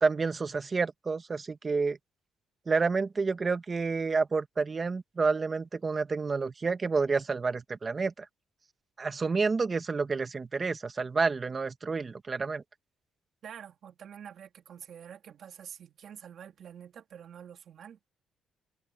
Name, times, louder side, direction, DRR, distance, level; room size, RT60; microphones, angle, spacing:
voice 1, 0.0-2.0 2.7-8.2 9.0-12.6, right 4 dB, 35° right, 1.5 m, -29 dB
voice 2, 13.4-18.1, right 8 dB, 65° right, 3.0 m, -47 dB
cardioid pair, 90°, 0 cm